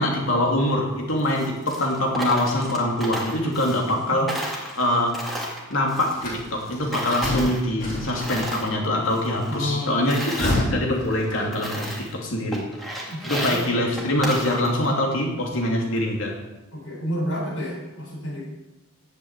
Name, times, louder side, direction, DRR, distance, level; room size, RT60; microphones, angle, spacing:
voice 1, 0.0-5.2 5.7-12.7 13.2-16.4, left 1 dB, 65° left, 0 dB, 3.0 m, -24 dB
Coin (dropping), 1.2-4.0 4.3-6.7 6.9-8.7 9.1-10.6 11.1-11.2 11.5-12.2 12.5-14.9, equal, ahead, 2.2 m, -33 dB
sound 1, 6.1-8.7 10.0-11.8, left 1 dB, 40° left, 4.0 m, -29 dB
voice 2, 9.5-10.4 13.1-13.7 16.7-18.4, equal, 85° left, -4 dB, 4.9 m, -30 dB
11.0 x 8.4 x 8.3 m, 1.0 s
head